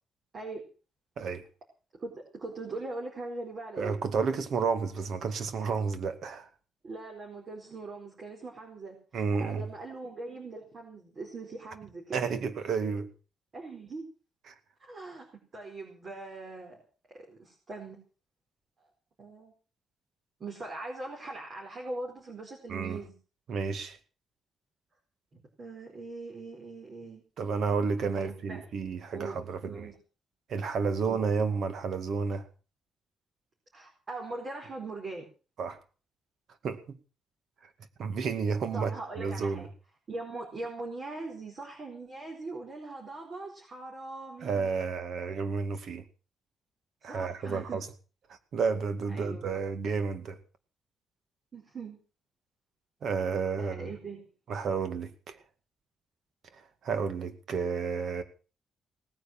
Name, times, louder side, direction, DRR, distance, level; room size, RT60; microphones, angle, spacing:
voice 1, 2.0-3.9 6.8-12.2 13.5-14.1 14.8-15.3 15.5-16.8 17.1-18.0 19.2-19.5 20.4-23.1 25.3-27.2 28.1-28.6 29.1-29.9 31.0-31.2 33.7-35.3 38.7-39.7 40.1-44.6 47.0-47.8 49.1-49.5 51.5-52.0 53.6-54.2, right 3 dB, 35° right, 4.5 m, -41 dB
voice 2, 3.8-6.5 9.1-9.7 12.1-13.1 14.5-14.6 22.7-23.0 23.5-24.0 27.4-29.9 30.5-32.5 35.6-35.8 36.6-37.0 38.0-39.7 44.4-46.0 47.0-47.9 48.5-50.4 53.0-53.9 54.5-55.4 56.8-58.2, right 5 dB, 60° right, 2.2 m, -31 dB
18.5 x 9.6 x 7.5 m
cardioid pair, 160°, 0 cm